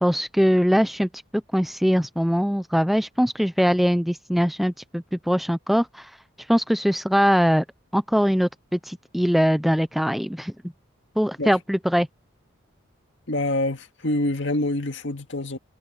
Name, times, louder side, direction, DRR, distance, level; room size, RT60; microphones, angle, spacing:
voice 1, 0.0-6.1 6.5-7.6 7.9-10.5 11.2-12.1, equal, ahead, 0.5 m, -22 dB
voice 2, 13.3-15.6, left 1 dB, 65° left, 2.0 m, -26 dB
head